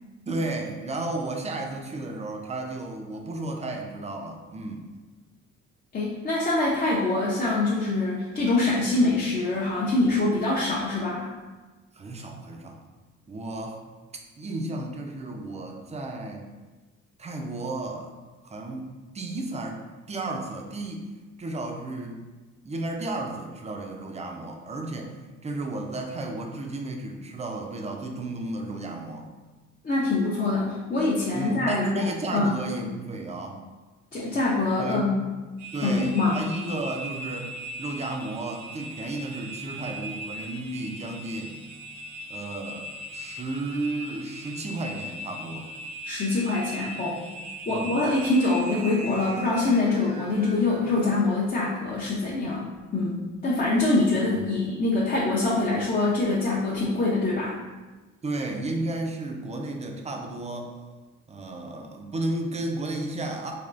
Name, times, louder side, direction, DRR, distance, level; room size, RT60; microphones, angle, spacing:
voice 1, 0.3-4.9 11.9-12.8 13.3-13.8 14.4-16.5 17.2-18.1 18.4-21.1 21.4-22.2 22.6-25.1 25.4-29.3 31.3-33.6 34.3-34.4 34.8-35.1 35.7-37.5 37.8-41.5 42.3-45.7 47.7-48.0 54.3-54.6 58.2-60.7 61.3-63.5, right 2 dB, 20° right, 2 dB, 0.4 m, -33 dB
voice 2, 5.9-11.3 29.8-32.0 32.3-32.6 34.1-35.2 35.8-36.4 46.0-47.2 47.7-52.7 52.9-53.2 53.4-57.6, left 2 dB, 30° left, -6 dB, 0.5 m, -24 dB
sound 1, 35.6-51.2, right 1 dB, 80° right, 0.5 m, -39 dB
3.3 x 2.3 x 2.4 m, 1.2 s
cardioid pair, 90°, 30 cm